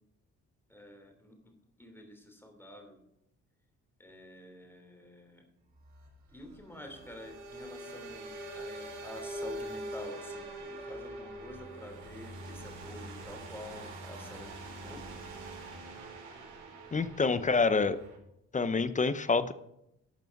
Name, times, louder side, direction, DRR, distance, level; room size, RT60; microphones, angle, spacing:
voice 1, 0.7-3.0 4.0-5.4 6.3-15.2, left 1 dB, 5° left, 4 dB, 3.0 m, -49 dB
sound 1, 5.7-18.2, right 1 dB, 80° right, 4.7 m, -44 dB
voice 2, 16.9-18.0 18.5-19.5, left 4 dB, 25° left, 14 dB, 0.7 m, -27 dB
12.5 x 6.8 x 5.9 m, 0.81 s
cardioid pair, 90°, 30 cm